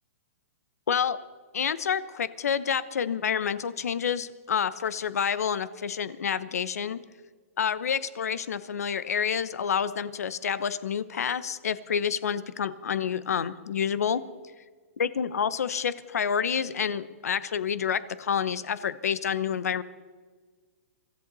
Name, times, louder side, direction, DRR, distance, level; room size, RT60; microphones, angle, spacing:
voice 1, 0.9-1.2 1.5-7.0 7.6-14.2 15.0-19.8, left 7 dB, 90° left, 15 dB, 1.0 m, -28 dB
25.0 x 13.5 x 4.1 m, 1.5 s
hypercardioid pair, 170°, 8 cm